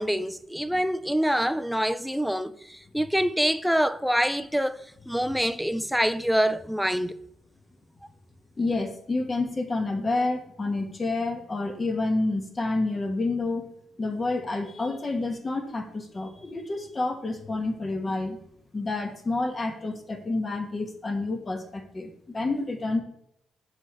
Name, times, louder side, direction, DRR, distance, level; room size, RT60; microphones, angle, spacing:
voice 1, 0.0-7.2, equal, ahead, 0.4 m, -26 dB
voice 2, 8.6-13.7 14.0-18.4 18.7-23.0, left 2 dB, 30° left, 0.9 m, -29 dB
6.3 x 4.1 x 4.6 m
cardioid pair, 90°, 0 cm